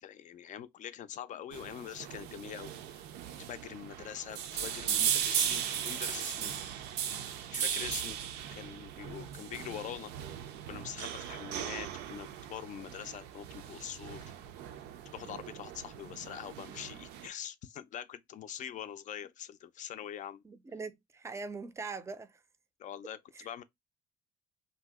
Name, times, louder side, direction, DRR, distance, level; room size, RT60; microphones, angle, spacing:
voice 1, 0.0-3.1 3.4-6.7 7.1-8.2 8.5-10.1 10.7-14.2 15.1-20.4 22.8-23.6, left 10 dB, 50° left, 0.4 m, -44 dB
sound 1, 1.5-17.3, right 9 dB, 85° right, 0.4 m, -37 dB
voice 2, 20.4-22.4 23.3-23.5, right 4 dB, 15° right, 0.4 m, -42 dB
2.7 x 2.0 x 3.4 m
cardioid pair, 110°, 17 cm